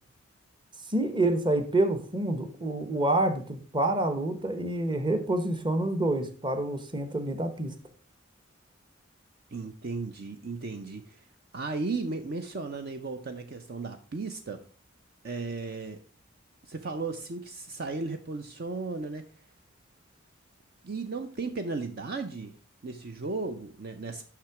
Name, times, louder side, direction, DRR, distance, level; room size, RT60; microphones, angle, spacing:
voice 1, 0.9-7.7, right 2 dB, 25° right, 9 dB, 1.0 m, -27 dB
voice 2, 9.5-11.2 11.5-14.6 15.2-16.0 16.7-19.2 20.8-22.5 22.8-24.2, right 3 dB, 50° right, 7 dB, 0.6 m, -35 dB
7.4 x 6.0 x 4.7 m, 0.41 s
head